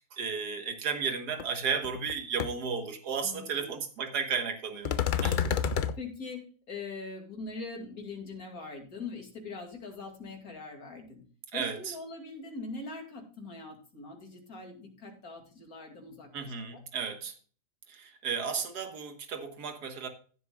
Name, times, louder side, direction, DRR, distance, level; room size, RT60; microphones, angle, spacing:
voice 1, 0.1-4.9 5.2-5.4 11.5-11.9 16.3-17.3 17.9-20.1, right 6 dB, 75° right, 1.9 m, -33 dB
sound 1, 1.4-1.5 1.8-2.1 2.4-2.5 4.9-5.9, left 7 dB, 80° left, 0.4 m, -28 dB
voice 2, 3.2-3.7 5.2-5.5 6.0-6.4 6.7-11.2 11.5-16.8, left 3 dB, 60° left, 3.0 m, -42 dB
15.5 x 8.0 x 2.4 m
omnidirectional pair, 1.7 m